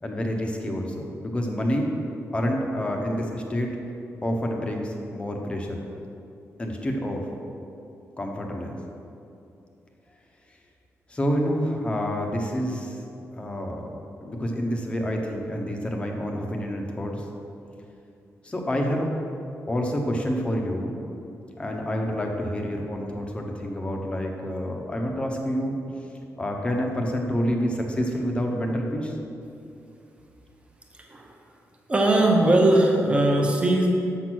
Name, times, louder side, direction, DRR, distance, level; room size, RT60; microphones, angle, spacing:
voice 1, 0.0-1.9 2.3-3.7 4.2-5.8 6.6-7.2 8.2-8.8 11.1-13.0 13.4-13.9 14.2-17.2 18.4-19.1 19.7-21.0 21.6-25.8 26.4-29.2, equal, 20° left, 1 dB, 0.8 m, -28 dB
voice 2, 31.0-31.3 31.9-33.9, right 1 dB, 20° right, 1 dB, 0.9 m, -20 dB
7.0 x 6.1 x 6.1 m, 2.7 s
wide cardioid pair, 170°, 6 cm